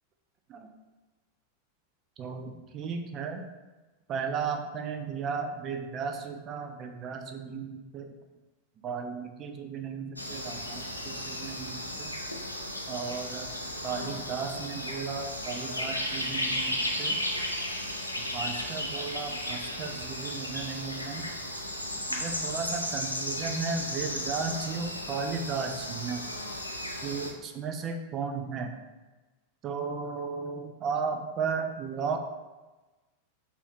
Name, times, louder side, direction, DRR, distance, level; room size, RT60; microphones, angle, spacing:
voice 1, 2.2-3.5 4.1-8.1 8.8-12.1 12.9-13.5 13.8-17.2 18.3-21.3 21.9-26.3 27.0-28.8 29.6-32.2, right 5 dB, 30° right, 5 dB, 0.4 m, -35 dB
sound 1, 10.2-27.3, left 1 dB, 85° left, 0.4 m, -34 dB
4.1 x 2.5 x 2.7 m, 1.2 s
figure-of-eight pair, 90°, 0 cm